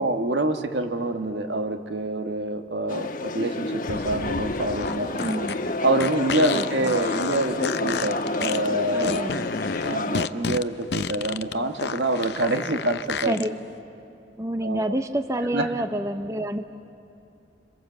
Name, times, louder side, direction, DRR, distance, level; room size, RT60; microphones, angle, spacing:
voice 1, 0.0-5.5 5.8-9.3 9.8-13.5 14.6-14.9 15.5-15.7, right 1 dB, 75° right, 6 dB, 1.5 m, -26 dB
sound 1, 2.9-10.3, left 2 dB, 50° left, 1.3 m, -30 dB
sound 2, 3.8-13.5, left 5 dB, 65° left, 0.6 m, -31 dB
voice 2, 5.2-5.5 6.5-6.9 8.9-9.5 13.3-13.5 14.4-16.7, right 1 dB, 15° right, 8 dB, 0.8 m, -28 dB
27.5 x 27.0 x 8.0 m, 2.8 s
head